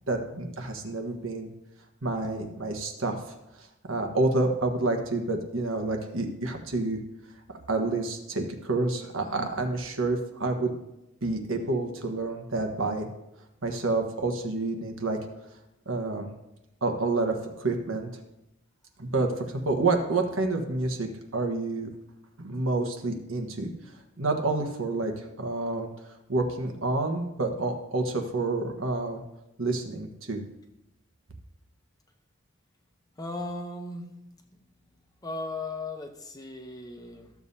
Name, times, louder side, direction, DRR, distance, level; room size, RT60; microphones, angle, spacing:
voice 1, 0.1-1.5 2.0-3.2 3.6-7.0 7.7-10.8 11.2-13.1 13.6-15.2 15.8-16.3 16.8-18.1 19.0-21.9 22.4-23.7 24.2-25.9 26.3-29.2 29.6-30.4, right 2 dB, 80° right, 3 dB, 1.3 m, -28 dB
voice 2, 33.2-34.1 34.5-34.6 35.2-37.3, left 2 dB, 20° left, 4 dB, 0.8 m, -37 dB
14.0 x 7.2 x 2.8 m, 0.90 s
head